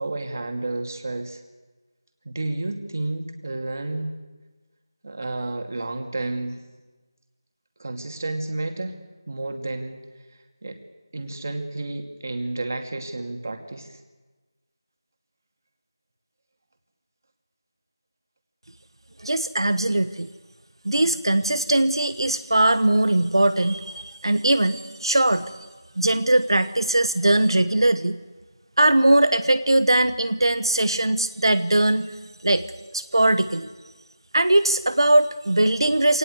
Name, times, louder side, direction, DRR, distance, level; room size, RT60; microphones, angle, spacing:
voice 1, 0.0-1.4 2.2-4.1 5.0-6.7 7.8-8.9 9.3-10.0 10.6-10.8 11.1-14.0, right 2 dB, 40° right, 5 dB, 2.5 m, -31 dB
voice 2, 19.2-20.3 20.8-25.5 26.0-28.2 28.8-32.1 32.4-32.7 32.9-33.7 34.3-36.2, right 1 dB, 90° right, 11 dB, 1.3 m, -20 dB
25.5 x 18.5 x 8.1 m, 1.3 s
figure-of-eight pair, 175°, 2 cm